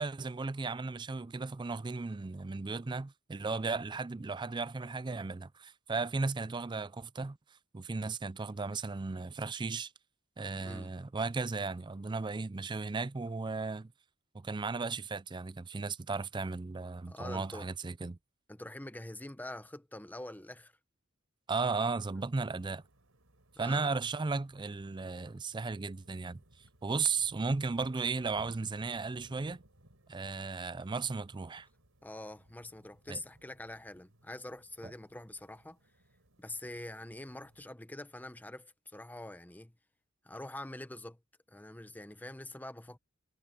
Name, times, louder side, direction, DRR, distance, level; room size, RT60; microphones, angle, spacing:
voice 1, 0.0-7.4 7.7-9.9 10.4-13.9 14.3-18.2 21.5-22.8 23.6-26.4 26.8-29.6 30.1-31.7 33.1-33.2 34.8-34.9, right 4 dB, 20° right, 0.4 m, -35 dB
voice 2, 10.6-10.9 17.1-17.7 18.5-20.7 23.6-23.9 32.0-35.8 36.4-39.7 40.2-41.2 41.5-43.0, left 1 dB, 10° left, 0.9 m, -45 dB
sound 1, 22.4-37.7, right 1 dB, 90° right, 3.9 m, -63 dB
head